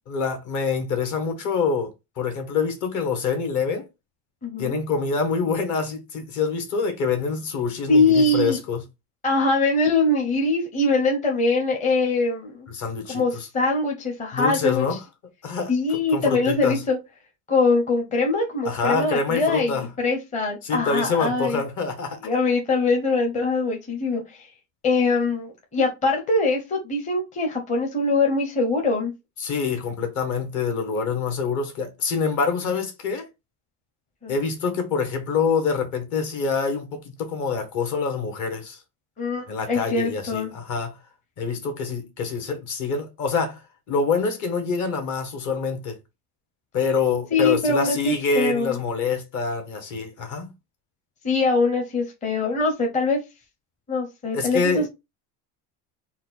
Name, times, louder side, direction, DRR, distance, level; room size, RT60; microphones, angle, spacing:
voice 1, 0.1-3.9 4.6-8.8 12.7-13.5 14.3-15.0 15.4-15.7 16.1-16.8 18.6-19.9 20.6-22.2 29.4-33.3 34.3-38.8 39.5-41.0 41.4-43.6 43.9-46.0 46.7-50.5 54.3-54.8, left 5 dB, 45° left, 1.3 m, -26 dB
voice 2, 4.4-4.8 7.9-8.6 9.2-12.7 13.1-14.8 15.7-17.0 17.5-21.6 22.2-24.5 24.8-29.1 34.2-34.3 39.2-40.5 47.3-48.8 51.2-53.2 53.9-54.9, left 3 dB, 15° left, 0.8 m, -22 dB
4.4 x 2.3 x 4.0 m
cardioid pair, 150°, 42 cm